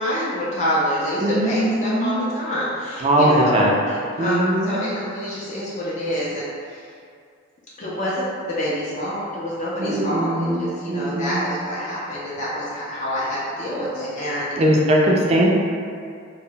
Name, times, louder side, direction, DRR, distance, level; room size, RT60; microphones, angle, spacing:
voice 1, 0.0-6.8 7.8-14.5, equal, 35° left, -7 dB, 0.4 m, -27 dB
voice 2, 1.2-2.2 3.0-3.7 4.2-4.8 9.8-11.4 14.6-15.5, right 1 dB, 30° right, -2 dB, 0.3 m, -20 dB
2.1 x 2.0 x 3.7 m, 2.3 s
head